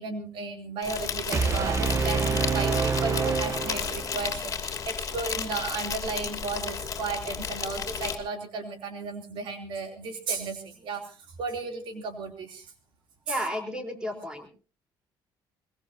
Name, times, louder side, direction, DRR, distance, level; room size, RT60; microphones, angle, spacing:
voice 1, 0.0-12.7 13.3-13.4, right 4 dB, 75° right, 6 dB, 3.0 m, -34 dB
Insect, 0.8-8.2, left 6 dB, 35° left, 3.1 m, -33 dB
sound 1, 1.3-4.4, right 5 dB, 35° right, 0.8 m, -27 dB
voice 2, 13.3-14.5, equal, 10° right, 4 dB, 3.8 m, -32 dB
22.0 x 22.0 x 2.7 m, 0.34 s
cardioid pair, 130°, 9 cm